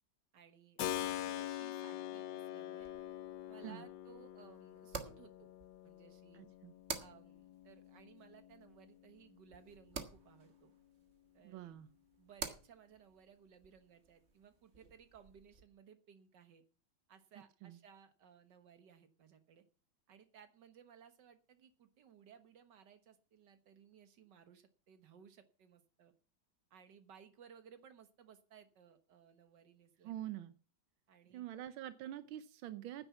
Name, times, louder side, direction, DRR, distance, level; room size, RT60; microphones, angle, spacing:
voice 1, 0.3-2.9 3.5-5.5 5.8-6.4 7.0-10.7 11.3-11.7 12.2-16.6 17.1-19.6 20.1-26.1 26.7-30.3 31.1-31.7, right 7 dB, 60° right, 9 dB, 2.0 m, -61 dB
Keyboard (musical), 0.8-9.4, left 12 dB, 65° left, 1.2 m, -45 dB
sound 1, 2.8-15.6, right 5 dB, 35° right, 1.6 m, -51 dB
voice 2, 6.3-6.7 11.4-11.9 17.6-17.8 30.0-30.5 31.3-33.1, right 12 dB, 85° right, 12 dB, 1.6 m, -46 dB
10.0 x 9.8 x 7.0 m, 0.39 s
omnidirectional pair, 2.1 m